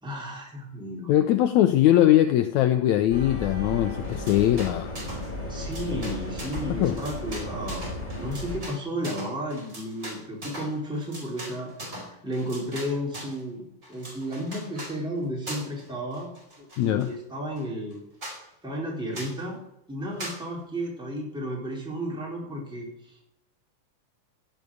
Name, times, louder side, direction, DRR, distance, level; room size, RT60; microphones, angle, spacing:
voice 1, 0.0-1.1 5.5-7.9 8.2-11.7 12.0-16.3 16.6-18.0 18.6-19.6 19.9-23.3, equal, ahead, -3 dB, 4.2 m, -33 dB
voice 2, 1.1-5.0 5.9-6.0 6.7-7.0 16.8-17.1, left 12 dB, 75° left, 8 dB, 2.0 m, -21 dB
sound 1, 3.1-8.6, left 1 dB, 15° left, 3.6 m, -34 dB
sound 2, 4.0-5.3 5.6-13.4 13.8-15.0 15.5-15.9 16.1-17.1 17.6-17.7 17.9-18.0 18.2-18.4 19.1-19.4 20.2-20.4, right 1 dB, 25° right, 4.8 m, -40 dB
16.0 x 6.8 x 9.3 m, 0.84 s
omnidirectional pair, 3.6 m